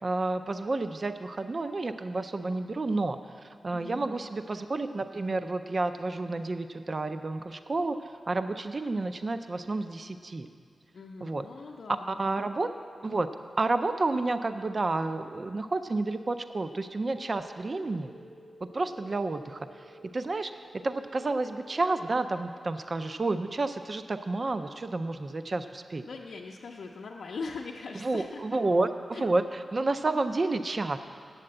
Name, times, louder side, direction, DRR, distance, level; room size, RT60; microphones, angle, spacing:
voice 1, 0.0-10.5 11.2-11.5 12.1-12.7 13.0-13.3 13.6-18.1 18.7-19.9 20.1-20.5 20.8-26.0 28.0-31.0, right 2 dB, 35° right, 9 dB, 0.4 m, -30 dB
voice 2, 3.7-4.2 10.9-12.4 26.0-28.6 29.1-29.3, left 4 dB, 75° left, -1 dB, 0.5 m, -41 dB
sound 1, 17.0-22.0, right 1 dB, 50° right, 0.8 m, -53 dB
8.5 x 7.8 x 8.7 m, 2.1 s
wide cardioid pair, 165°, 0 cm